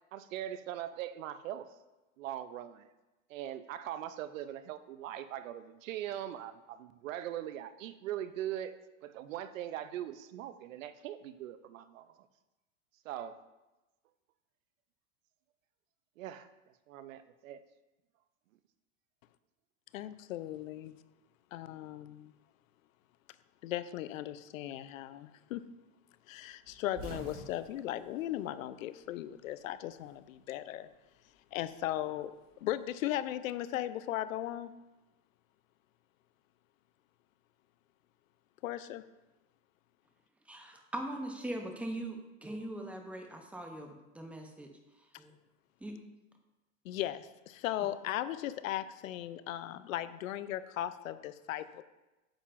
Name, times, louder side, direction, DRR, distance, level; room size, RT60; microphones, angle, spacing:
voice 1, 0.1-1.8 2.2-2.9 3.3-12.2 13.0-13.4 16.2-16.5 16.9-17.6, right 11 dB, 80° right, 12 dB, 0.7 m, -41 dB
voice 2, 19.9-21.0 21.5-22.3 23.6-25.6 26.3-30.9 31.5-32.3 32.6-34.7 38.6-39.0 46.8-51.8, left 13 dB, 90° left, 14 dB, 0.6 m, -37 dB
sound 1, 26.6-29.2 29.5-30.5 31.7-33.2, right 2 dB, 35° right, 2.6 m, -50 dB
voice 3, 40.5-44.7 45.2-45.3 45.8-45.9, right 1 dB, 5° right, 3 dB, 0.6 m, -41 dB
8.7 x 7.2 x 2.5 m, 1.1 s
supercardioid pair, 135°, 39 cm